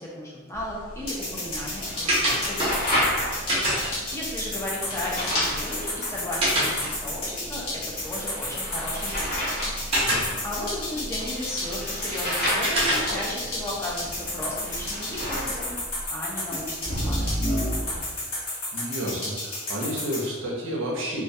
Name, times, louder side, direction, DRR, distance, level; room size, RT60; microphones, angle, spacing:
voice 1, 0.0-2.8 4.1-9.3 10.4-15.8 16.1-17.5, left 1 dB, 15° left, -4 dB, 0.4 m, -35 dB
sound 1, 0.5-18.0, equal, 50° left, 0.9 m, -32 dB
sound 2, 0.9-15.5, equal, 25° right, 0.6 m, -31 dB
sound 3, 1.1-20.2, left 2 dB, 90° left, 0.9 m, -32 dB
voice 2, 10.0-10.3 18.7-21.2, equal, 60° right, -3 dB, 0.5 m, -31 dB
2.2 x 2.1 x 2.6 m, 1.4 s
head